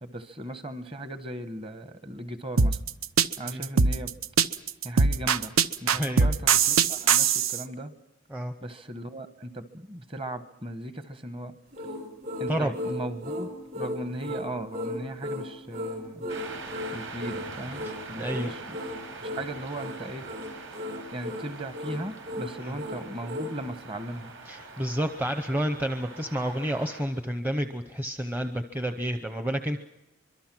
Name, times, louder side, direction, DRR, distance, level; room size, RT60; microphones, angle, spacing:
voice 1, 0.0-2.8 3.4-4.1 4.8-5.5 5.8-7.9 8.6-11.5 12.4-13.5 13.7-16.3 16.9-18.8 19.2-20.3 21.1-24.3, right 1 dB, 25° right, 10 dB, 1.1 m, -37 dB
sound 1, 2.6-7.6, right 6 dB, 90° right, 0.8 m, -21 dB
voice 2, 5.9-6.3 8.3-8.5 12.5-12.7 17.8-18.5 22.6-22.8 24.5-29.8, equal, 10° right, 7 dB, 0.7 m, -30 dB
sound 2, 11.7-23.6, left 1 dB, 45° right, 3.8 m, -36 dB
sound 3, 16.3-27.0, right 3 dB, 65° right, 5.7 m, -43 dB
25.0 x 23.0 x 6.1 m, 0.94 s
head